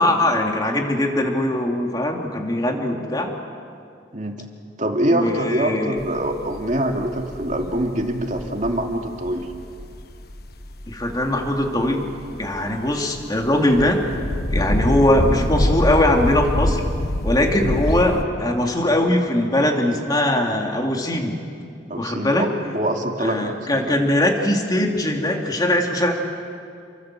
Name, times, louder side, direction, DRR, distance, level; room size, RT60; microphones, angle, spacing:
voice 1, 0.0-3.3 5.1-5.9 10.9-12.1 12.4-14.1 14.5-16.8 17.2-21.3 22.0-22.5 23.2-26.1, left 1 dB, 20° left, 1 dB, 3.0 m, -21 dB
voice 2, 4.1-4.4 4.8-9.5 21.9-22.5 22.7-24.0, right 1 dB, 45° right, 2 dB, 2.5 m, -24 dB
sound 1, 6.0-18.2, left 1 dB, 60° left, 1.3 m, -26 dB
29.5 x 24.0 x 7.7 m, 2.4 s
head